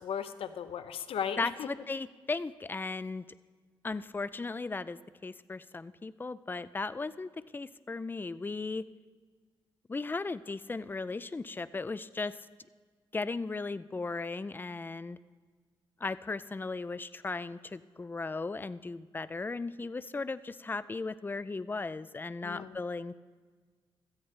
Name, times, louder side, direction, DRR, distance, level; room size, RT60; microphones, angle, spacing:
voice 1, 0.0-1.7 22.4-22.8, left 8 dB, 80° left, 11 dB, 0.7 m, -36 dB
voice 2, 1.4-3.2 3.8-8.9 9.9-12.4 13.1-15.2 16.0-23.2, left 3 dB, 20° left, 16 dB, 0.4 m, -36 dB
16.5 x 13.5 x 3.3 m, 1.5 s
cardioid pair, 80°, 10 cm